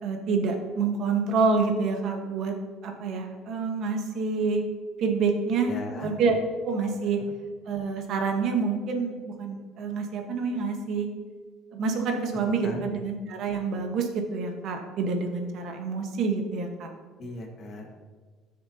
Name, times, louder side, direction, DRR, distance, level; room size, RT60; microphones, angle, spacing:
voice 1, 0.0-2.5 2.8-4.6 5.0-5.7 6.0-6.4 6.6-7.2 7.7-11.1 11.7-16.9, right 4 dB, 45° right, 3 dB, 1.3 m, -27 dB
voice 2, 5.7-6.1 6.9-7.1 12.6-12.8 17.2-17.9, left 1 dB, 30° left, 1 dB, 1.6 m, -37 dB
15.0 x 6.7 x 2.8 m, 1.5 s
cardioid pair, 180°, 0 cm